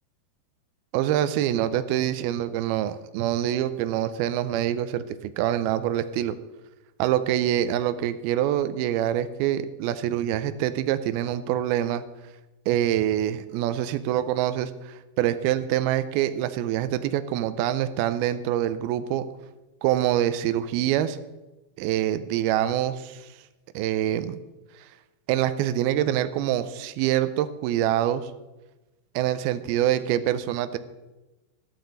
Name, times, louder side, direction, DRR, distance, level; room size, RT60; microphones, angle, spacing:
voice 1, 0.9-6.4 7.0-12.0 12.7-19.2 19.8-21.2 21.8-23.3 23.8-24.4 25.3-28.3 29.2-30.8, right 12 dB, 85° right, 12 dB, 2.5 m, -25 dB
13.5 x 12.5 x 4.0 m, 1.1 s
omnidirectional pair, 4.4 m